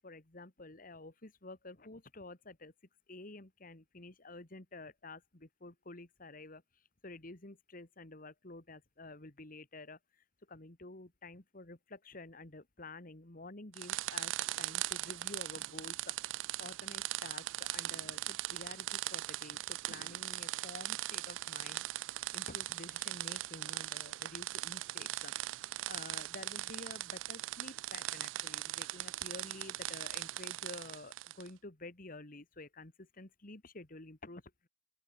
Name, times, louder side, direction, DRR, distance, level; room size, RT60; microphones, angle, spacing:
voice 1, 0.0-2.7 3.1-16.1 16.6-25.3 25.8-34.7, left 2 dB, 50° left, 2.2 m, -50 dB
sound 1, 13.7-31.5, right 16 dB, 90° right, 0.3 m, -40 dB
open air
head